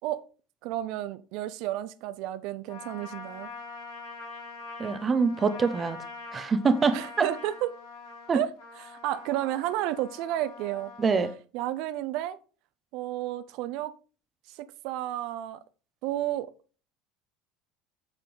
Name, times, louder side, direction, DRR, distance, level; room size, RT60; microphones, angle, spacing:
voice 1, 0.6-3.5 6.9-7.7 8.3-8.6 8.9-10.9 11.5-12.4 12.9-13.9 14.5-14.6 14.8-15.6 16.0-16.5, right 13 dB, 65° right, 0.5 m, -31 dB
Trumpet, 2.7-11.4, left 4 dB, 75° left, 3.8 m, -44 dB
voice 2, 4.8-6.0 6.3-7.3 8.3-8.4 11.0-11.3, right 5 dB, 30° right, 1.0 m, -25 dB
8.0 x 4.5 x 5.3 m
hypercardioid pair, 75°, 0 cm